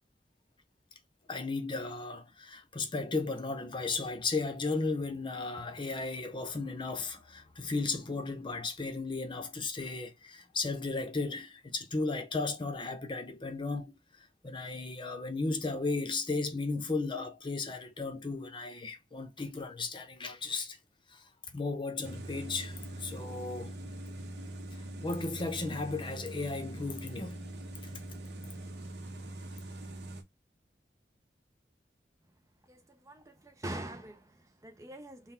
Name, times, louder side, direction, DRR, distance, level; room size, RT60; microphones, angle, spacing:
voice 1, 1.3-14.0 14.4-20.8 21.1-23.7 25.0-27.4, left 3 dB, 30° left, 0.7 m, -35 dB
sound 1, 22.0-30.2, right 1 dB, 70° right, 0.9 m, -43 dB
voice 2, 32.7-35.3, right 1 dB, 20° right, 0.5 m, -44 dB
3.8 x 2.2 x 4.2 m
head